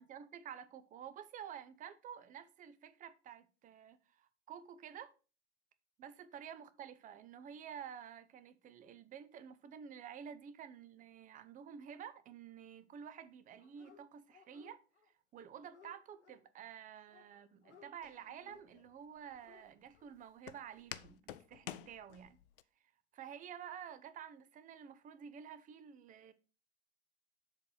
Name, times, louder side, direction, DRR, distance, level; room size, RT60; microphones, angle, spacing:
voice 1, 0.0-5.1 6.0-14.8 15.3-22.4 23.1-26.3, right 8 dB, 25° right, 0.7 m, -51 dB
Dog, 13.6-14.0 14.3-15.1 15.4-16.4 17.1-17.9 18.4-18.7 19.2-19.6 19.9-20.0, left 6 dB, 80° left, 1.2 m, -62 dB
Walk footsteps, 18.0-22.6, left 13 dB, 55° left, 0.6 m, -51 dB
7.2 x 4.1 x 6.1 m
figure-of-eight pair, 85°, 34 cm